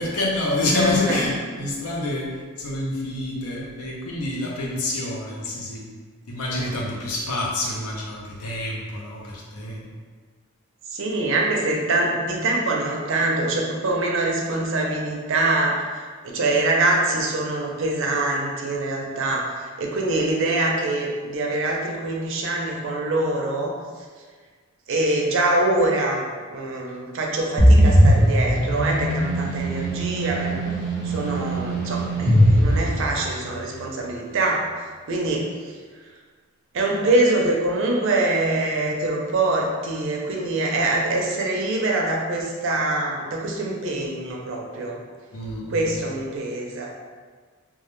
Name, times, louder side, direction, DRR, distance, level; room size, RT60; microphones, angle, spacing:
voice 1, 0.0-5.9 6.3-9.8 45.3-46.0, left 2 dB, 80° left, -2 dB, 0.5 m, -27 dB
voice 2, 0.7-1.2 6.5-6.8 10.9-23.8 24.9-30.6 31.0-34.7 35.1-35.8 36.7-45.0 45.7-46.9, right 2 dB, 60° right, -1 dB, 0.4 m, -24 dB
sound 1, 27.6-33.5, equal, 15° left, 0.7 m, -19 dB
2.2 x 2.1 x 3.0 m, 1.5 s
head